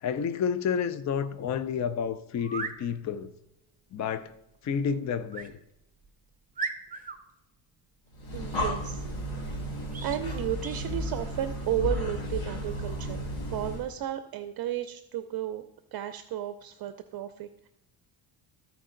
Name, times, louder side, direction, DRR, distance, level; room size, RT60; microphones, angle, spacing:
voice 1, 0.0-3.3 3.9-4.3 4.6-5.5, left 7 dB, 40° left, 0.5 m, -30 dB
sound 1, 2.4-2.8 5.3-5.5 6.0-6.1 6.5-7.2 9.9-10.2 10.6-10.9, right 5 dB, 20° right, 0.7 m, -36 dB
Breathing, 8.1-13.9, equal, 90° left, 2.3 m, -33 dB
voice 2, 8.3-9.0 9.3-9.6 10.0-15.6 15.9-17.7, right 11 dB, 55° right, 0.6 m, -33 dB
14.0 x 4.7 x 3.8 m
cardioid pair, 115°, 45 cm